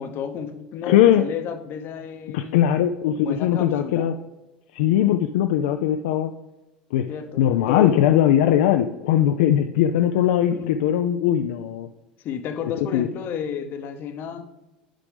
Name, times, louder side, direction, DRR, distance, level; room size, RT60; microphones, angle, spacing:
voice 1, 0.0-2.6 3.2-4.1 7.1-8.0 10.5-10.9 12.2-14.5, left 7 dB, 50° left, 8 dB, 0.8 m, -32 dB
voice 2, 0.9-1.2 2.3-4.1 4.7-6.3 6.9-7.1 7.4-11.9 12.9-13.1, left 11 dB, 70° left, 7 dB, 0.3 m, -20 dB
10.0 x 5.0 x 3.3 m, 1.0 s
hypercardioid pair, 80°, 5 cm